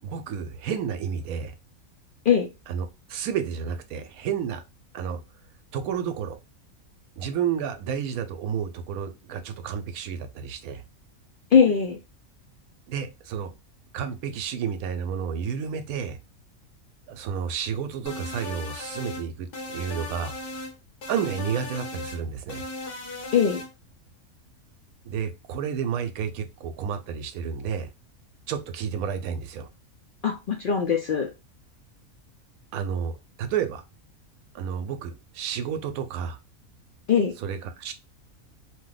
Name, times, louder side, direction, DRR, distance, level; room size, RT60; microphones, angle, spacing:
voice 1, 0.0-1.5 2.7-4.6 4.9-5.2 5.7-6.4 7.2-10.8 12.9-13.5 13.9-16.2 17.1-20.3 21.1-22.6 25.0-27.9 28.5-29.7 32.7-33.8 34.5-36.4 37.4-37.9, right 7 dB, 90° right, 1.0 m, -31 dB
voice 2, 11.5-12.0 23.3-23.6 30.2-31.3 37.1-37.3, left 7 dB, 75° left, 0.4 m, -21 dB
sound 1, 18.1-19.3 19.5-20.7 21.0-22.2 22.5-23.7, left 2 dB, 45° left, 0.9 m, -37 dB
2.6 x 2.1 x 3.8 m
omnidirectional pair, 1.5 m